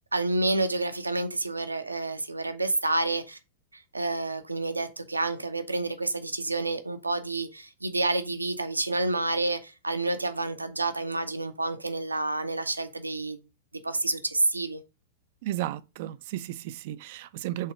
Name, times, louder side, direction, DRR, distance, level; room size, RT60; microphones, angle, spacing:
voice 1, 0.1-3.4 3.7-13.4 13.8-14.8, right 2 dB, 85° right, 0.8 m, -29 dB
voice 2, 15.4-17.7, right 14 dB, 50° right, 0.5 m, -34 dB
5.6 x 3.5 x 4.8 m
figure-of-eight pair, 100°, 0 cm